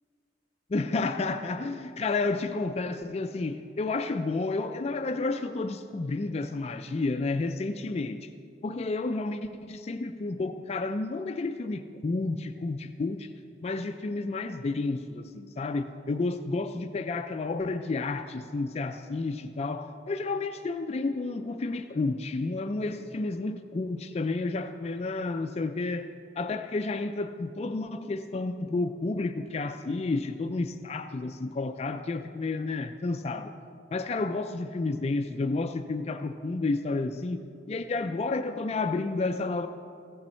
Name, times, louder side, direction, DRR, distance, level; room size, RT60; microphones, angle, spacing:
voice 1, 0.7-8.3 8.6-13.3 13.6-26.1 26.4-33.5 33.9-37.4 37.7-39.7, left 3 dB, 35° left, 8 dB, 0.4 m, -31 dB
15.0 x 8.7 x 4.4 m, 2.3 s
head